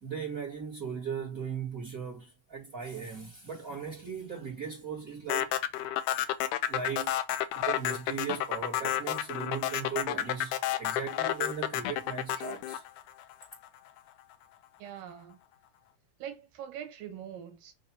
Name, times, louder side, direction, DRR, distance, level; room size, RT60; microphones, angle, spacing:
voice 1, 0.0-5.5 6.7-7.1 7.5-10.5 10.8-12.8, right 6 dB, 30° right, 2.1 m, -38 dB
voice 2, 3.2-3.6 14.8-15.4 16.2-17.7, right 9 dB, 90° right, 2.9 m, -43 dB
sound 1, 5.3-13.7, left 12 dB, 80° left, 2.1 m, -30 dB
6.0 x 3.1 x 5.5 m
omnidirectional pair, 3.7 m